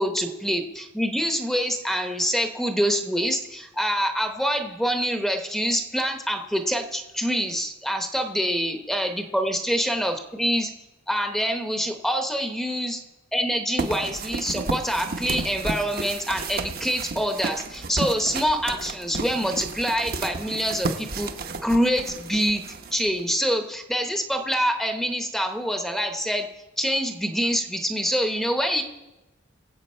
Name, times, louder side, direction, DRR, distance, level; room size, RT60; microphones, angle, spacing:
voice 1, 0.0-10.7 11.1-13.0 13.3-21.3 21.6-22.6 22.9-26.5 26.8-28.8, equal, ahead, 5 dB, 0.8 m, -25 dB
sound 1, 13.8-23.3, right 3 dB, 50° right, 0.8 m, -32 dB
22.0 x 8.0 x 4.4 m, 1.0 s
head